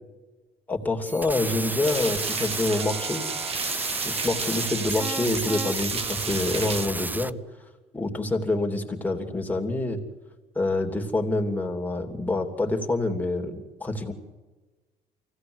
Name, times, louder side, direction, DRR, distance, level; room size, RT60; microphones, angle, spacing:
voice 1, 0.7-3.3 4.0-7.3 7.9-10.0 10.5-14.1, left 2 dB, 10° left, 2 dB, 3.1 m, -27 dB
sound 1, 1.1-7.3, right 2 dB, 10° right, 0.6 m, -32 dB
sound 2, 1.8-6.9, right 5 dB, 35° right, 1.7 m, -32 dB
24.0 x 16.5 x 8.0 m, 1.3 s
cardioid pair, 110°, 17 cm